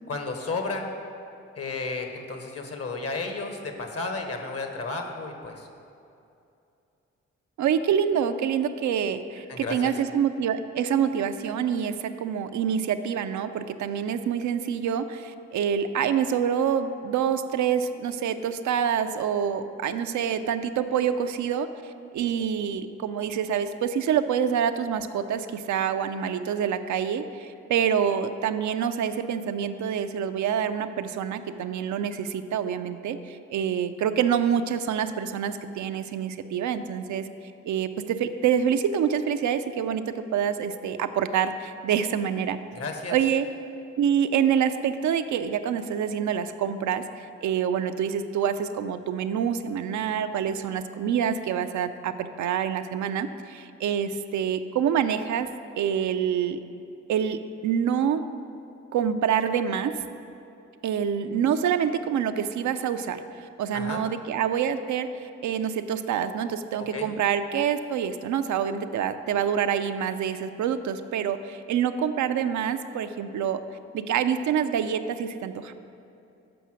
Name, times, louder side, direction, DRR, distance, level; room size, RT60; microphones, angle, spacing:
voice 1, 0.1-0.9 1.6-5.7 9.5-9.9 42.7-43.2 63.7-64.0 66.8-67.1, left 3 dB, 50° left, 4 dB, 1.2 m, -33 dB
voice 2, 7.6-37.3 37.6-42.6 43.1-43.5 44.0-47.0 47.4-55.5 55.8-56.6 57.1-58.2 58.9-59.9 60.8-63.2 63.6-65.1 65.4-73.6 73.9-75.7, right 8 dB, 65° right, 9 dB, 0.5 m, -26 dB
7.0 x 5.5 x 6.1 m, 2.6 s
hypercardioid pair, 40°, 31 cm